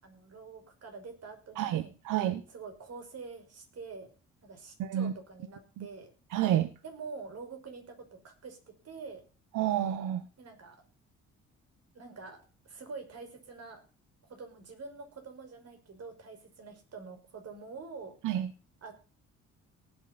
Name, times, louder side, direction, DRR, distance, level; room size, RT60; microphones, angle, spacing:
voice 1, 0.0-1.9 2.5-4.1 4.4-6.1 6.8-8.6 8.8-9.2 10.4-10.8 11.9-13.8 14.3-18.2 18.8-18.9, right 4 dB, 55° right, 6 dB, 5.5 m, -46 dB
voice 2, 1.6-2.4 4.8-5.1 5.8-5.9 6.3-6.7 9.5-10.2 18.2-18.5, right 11 dB, 90° right, 12 dB, 1.1 m, -29 dB
18.5 x 9.1 x 4.2 m, 0.33 s
cardioid pair, 90°, 30 cm